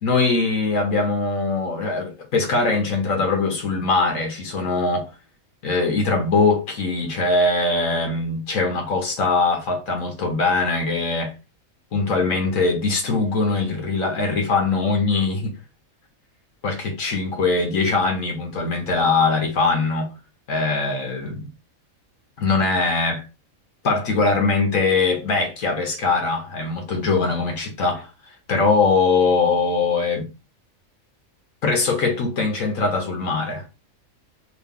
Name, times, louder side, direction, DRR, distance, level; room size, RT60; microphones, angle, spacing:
voice 1, 0.0-5.1 5.6-11.3 11.9-15.6 16.6-20.1 20.5-21.5 22.4-23.2 23.8-28.0 28.5-30.3 31.6-33.6, left 3 dB, 75° left, 1.3 m, -21 dB
3.0 x 3.0 x 3.5 m
omnidirectional pair, 1.5 m